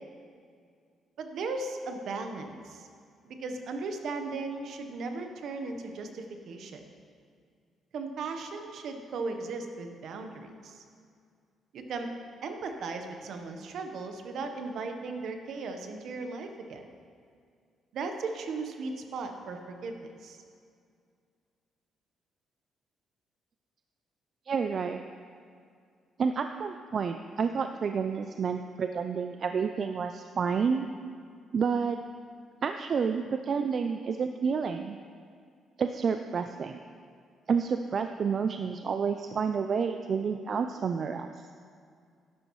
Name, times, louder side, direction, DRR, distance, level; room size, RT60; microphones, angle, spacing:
voice 1, 1.2-2.9 3.2-6.8 7.9-10.8 11.7-12.1 12.4-16.8 17.9-20.4, right 3 dB, 70° right, 5 dB, 1.0 m, -37 dB
voice 2, 24.5-25.0 26.2-30.9 31.5-32.0 32.6-35.0 35.8-36.8 37.5-41.5, right 6 dB, 50° right, 7 dB, 0.4 m, -29 dB
12.0 x 10.5 x 3.1 m, 2.2 s
cardioid pair, 90°, 0 cm